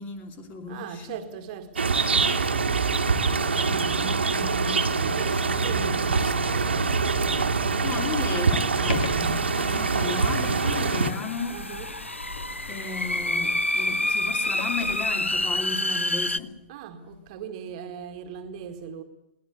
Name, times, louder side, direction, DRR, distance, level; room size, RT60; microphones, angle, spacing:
voice 1, 0.0-1.2 2.9-4.9 5.3-6.5 7.4-9.2 9.5-11.6 12.7-16.6, left 4 dB, 20° left, 2.9 m, -36 dB
voice 2, 0.7-2.4 4.4-7.0 7.3-8.0 11.5-11.9 16.7-19.0, right 7 dB, 35° right, 2.0 m, -39 dB
sound 1, 1.8-11.1, right 4 dB, 65° right, 1.8 m, -24 dB
Sliding door, 5.8-15.7, left 4 dB, 50° left, 3.1 m, -41 dB
sound 2, 9.2-16.4, left 1 dB, 85° left, 0.7 m, -29 dB
23.0 x 18.5 x 8.3 m
figure-of-eight pair, 120°, 6 cm